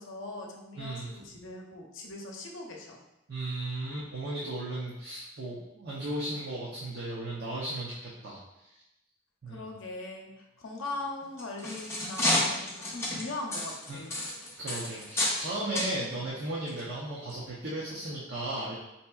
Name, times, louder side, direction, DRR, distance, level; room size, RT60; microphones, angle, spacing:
voice 1, 0.0-3.0 9.5-14.2 15.6-15.8, left 2 dB, 80° left, 0 dB, 0.6 m, -40 dB
voice 2, 0.8-1.1 3.3-8.4 9.4-9.7 13.9-14.0 14.5-18.7, right 1 dB, 55° right, -7 dB, 0.6 m, -35 dB
sound 1, 11.2-15.5 15.7-15.9 16.7-16.8 17.3-17.4, left 1 dB, 15° left, 0.5 m, -30 dB
4.4 x 2.8 x 2.3 m, 0.91 s
head